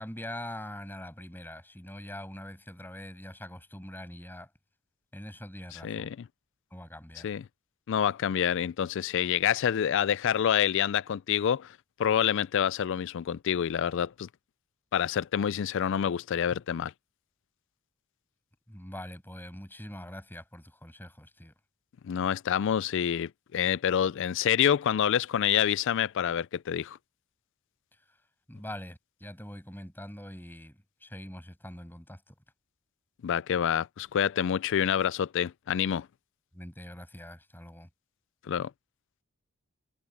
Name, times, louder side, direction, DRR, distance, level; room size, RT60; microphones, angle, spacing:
voice 1, 0.0-4.5 5.1-6.1 6.7-7.3 18.7-21.5 28.5-32.3 36.5-37.9, left 1 dB, 10° left, 7.6 m, -43 dB
voice 2, 5.8-6.2 7.2-7.4 7.9-11.7 12.0-14.3 14.9-16.9 22.0-27.0 33.2-36.1 38.5-38.7, left 9 dB, 55° left, 0.3 m, -27 dB
head